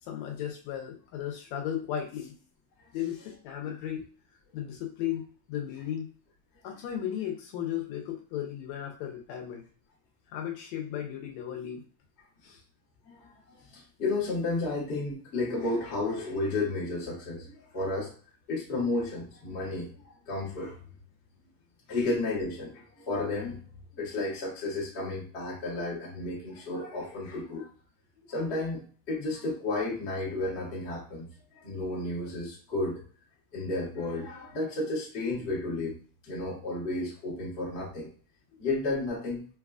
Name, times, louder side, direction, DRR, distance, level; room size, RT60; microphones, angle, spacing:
voice 1, 0.0-2.3 2.9-4.0 4.5-6.1 6.6-9.6 10.3-11.8 12.4-12.6, left 10 dB, 80° left, 2 dB, 1.8 m, -35 dB
voice 2, 13.1-18.1 18.5-20.8 21.9-23.7 24.0-27.7 28.3-33.0 33.5-35.9 36.2-38.1 38.6-39.4, left 2 dB, 60° left, -5 dB, 0.6 m, -32 dB
4.6 x 2.2 x 2.3 m, 0.42 s
omnidirectional pair, 3.4 m